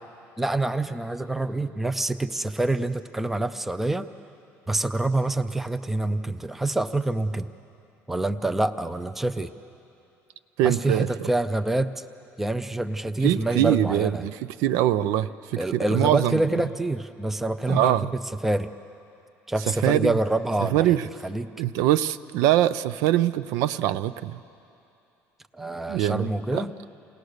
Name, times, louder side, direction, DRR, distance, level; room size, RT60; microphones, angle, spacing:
voice 1, 0.4-4.1 4.7-7.5 8.1-9.5 10.6-12.0 12.4-14.2 15.6-18.0 18.4-18.7 19.5-20.9 21.2-21.5 25.5-26.7, right 2 dB, 5° right, 11 dB, 0.4 m, -26 dB
voice 2, 10.6-11.3 13.2-16.4 17.7-18.1 19.8-20.1 20.6-21.1 21.6-24.4 25.9-26.6, right 13 dB, 80° right, 14 dB, 0.5 m, -23 dB
28.5 x 18.5 x 6.5 m, 2.7 s
cardioid pair, 170°, 6 cm